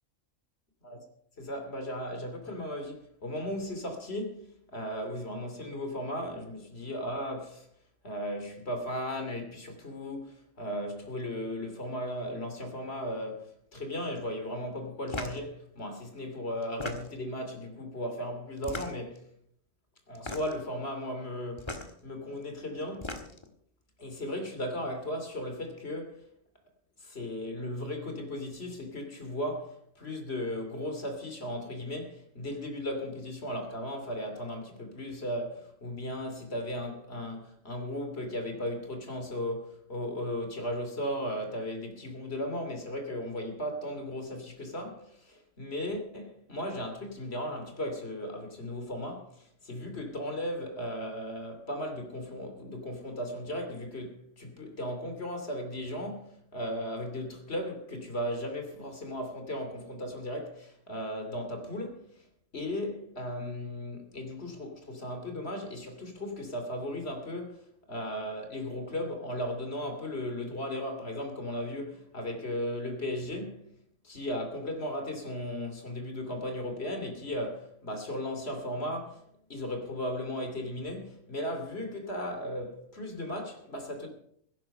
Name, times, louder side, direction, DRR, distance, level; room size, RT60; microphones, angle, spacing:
voice 1, 1.4-7.7 8.0-19.3 20.1-23.3 24.0-26.2 27.0-62.3 62.5-73.7 74.0-79.2 79.5-84.1, equal, 50° left, 3.1 m, -36 dB
sound 1, 15.1-15.4 16.6-17.3 18.6-19.2 20.1-20.6 21.6-21.9 22.8-23.5, left 2 dB, 20° left, 1.5 m, -38 dB
16.0 x 11.0 x 5.5 m
omnidirectional pair, 1.4 m